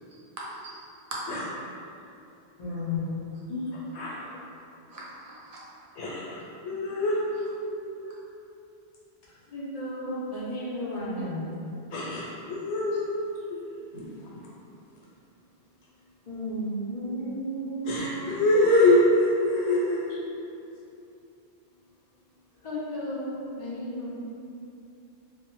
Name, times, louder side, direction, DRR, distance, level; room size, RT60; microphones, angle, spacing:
voice 1, 0.4-0.8 2.7-2.8 3.3-3.6 4.9-5.6 7.7-8.2, right 2 dB, 50° right, -7 dB, 0.4 m, -43 dB
voice 2, 2.6-3.4 9.5-11.7 16.3-18.2 22.6-24.1, equal, 50° left, -6 dB, 0.5 m, -33 dB
voice 3, 3.9-4.4 6.0-7.2 11.9-13.1 13.5-13.6 13.9-14.1 17.8-20.2, left 1 dB, 80° left, -5 dB, 0.9 m, -24 dB
2.1 x 2.1 x 2.9 m, 2.7 s
omnidirectional pair, 1.2 m